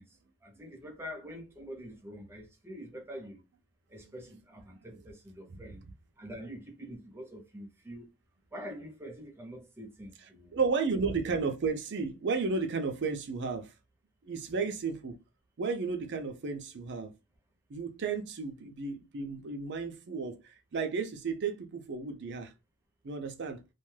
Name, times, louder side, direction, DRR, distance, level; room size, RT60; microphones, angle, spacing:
voice 1, 0.0-3.4 3.9-5.8 6.2-8.1 8.5-10.6 11.0-11.1, equal, 10° right, 0.7 m, -45 dB
voice 2, 10.5-13.7 14.2-15.2 15.6-17.1 17.7-22.5 23.0-23.6, right 4 dB, 55° right, 0.5 m, -33 dB
2.4 x 2.2 x 3.1 m
head